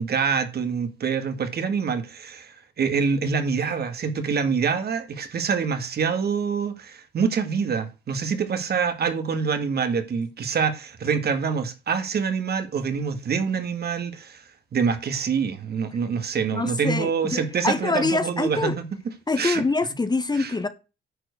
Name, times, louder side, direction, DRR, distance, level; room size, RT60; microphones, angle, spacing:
voice 1, 0.0-18.9 19.4-19.6 20.4-20.5, right 6 dB, 55° right, 2.0 m, -26 dB
voice 2, 16.5-18.8 19.3-20.7, left 3 dB, 20° left, 1.2 m, -25 dB
10.0 x 4.5 x 6.9 m
cardioid pair, 90°, 20 cm